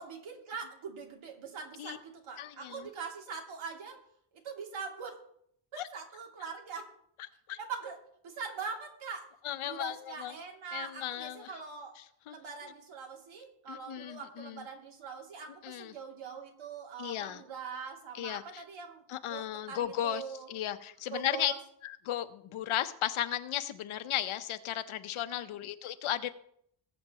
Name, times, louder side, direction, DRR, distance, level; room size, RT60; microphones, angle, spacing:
voice 1, 0.0-4.0 4.4-5.2 5.7-6.9 7.6-8.0 8.2-9.3 9.6-11.9 12.3-20.5 21.1-21.6, right 5 dB, 70° right, 0 dB, 2.8 m, -42 dB
voice 2, 2.4-2.9 5.8-5.9 7.5-7.6 9.4-10.3 10.7-11.5 12.3-12.4 13.7-14.7 15.6-15.9 17.0-17.4 18.1-18.6 19.1-20.2 20.5-21.5 21.8-26.3, left 12 dB, 75° left, 10 dB, 1.0 m, -35 dB
20.5 x 8.1 x 3.0 m, 0.69 s
cardioid pair, 150°, 50 cm